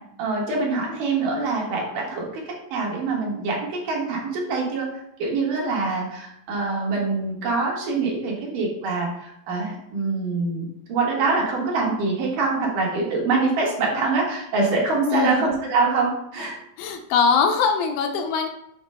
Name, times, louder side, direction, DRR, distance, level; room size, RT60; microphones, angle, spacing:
voice 1, 0.2-2.4 2.7-4.9 5.2-16.6, right 3 dB, 65° right, -2 dB, 2.9 m, -24 dB
voice 2, 15.1-15.5 16.8-18.5, left 5 dB, 90° left, 4 dB, 2.5 m, -21 dB
7.8 x 2.9 x 5.5 m, 0.74 s
omnidirectional pair, 4.2 m